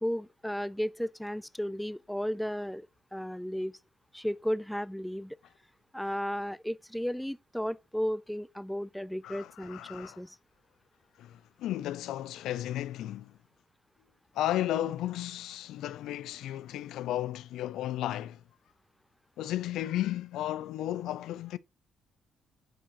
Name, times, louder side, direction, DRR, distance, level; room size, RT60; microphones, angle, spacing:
voice 1, 0.0-2.9 3.1-3.7 4.1-5.3 5.9-10.4, equal, 5° left, 0.5 m, -34 dB
voice 2, 9.2-10.2 11.2-13.3 14.3-18.4 19.4-21.6, left 13 dB, 85° left, 0.4 m, -34 dB
10.0 x 3.8 x 5.9 m
cardioid pair, 90°, 0 cm